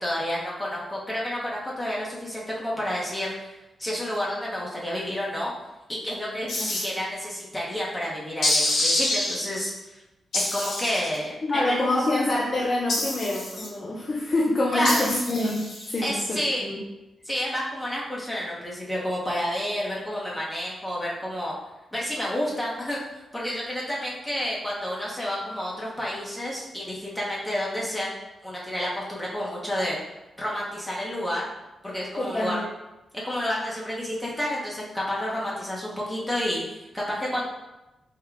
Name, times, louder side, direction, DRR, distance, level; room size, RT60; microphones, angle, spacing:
voice 1, 0.0-5.5 5.9-10.0 10.3-11.9 14.7-15.1 16.0-16.7 17.2-21.6 21.9-23.0 23.3-28.1 28.4-30.0 30.4-31.5 31.8-32.6 33.1-37.5, equal, 10° left, -5 dB, 0.8 m, -30 dB
voice 2, 6.4-6.8 11.4-16.8 32.2-32.6, left 1 dB, 40° left, -3 dB, 0.5 m, -26 dB
sound 1, 6.5-6.8 8.4-9.3 10.3-11.2 12.9-13.7 14.8-16.0, left 1 dB, 85° left, 0.9 m, -26 dB
3.7 x 2.1 x 3.4 m, 0.99 s
cardioid pair, 85°, 0 cm